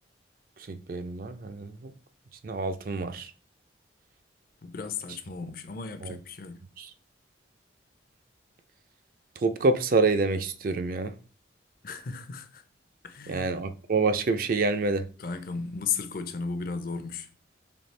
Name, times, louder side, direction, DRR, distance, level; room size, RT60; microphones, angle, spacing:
voice 1, 0.7-1.9 2.4-3.3 6.0-6.2 6.8-6.9 9.4-11.1 13.3-15.0, right 3 dB, 50° right, 0.4 m, -27 dB
voice 2, 4.6-6.6 11.8-12.6 13.0-13.5 15.2-17.3, left 5 dB, 50° left, 0.5 m, -35 dB
4.2 x 3.1 x 3.2 m
head